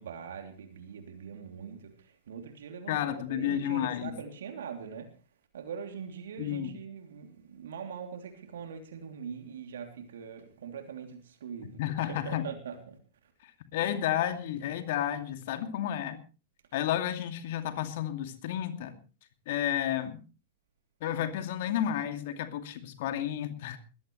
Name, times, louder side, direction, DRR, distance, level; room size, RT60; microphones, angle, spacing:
voice 1, 0.0-5.1 5.5-11.8 12.1-13.0, right 7 dB, 65° right, 5 dB, 3.0 m, -42 dB
voice 2, 2.9-4.1 6.4-6.8 11.8-12.5 13.7-16.2 16.7-18.9 19.5-20.2 21.0-23.8, left 11 dB, 55° left, 7 dB, 2.4 m, -31 dB
21.0 x 15.0 x 3.2 m, 0.36 s
figure-of-eight pair, 100°, 0 cm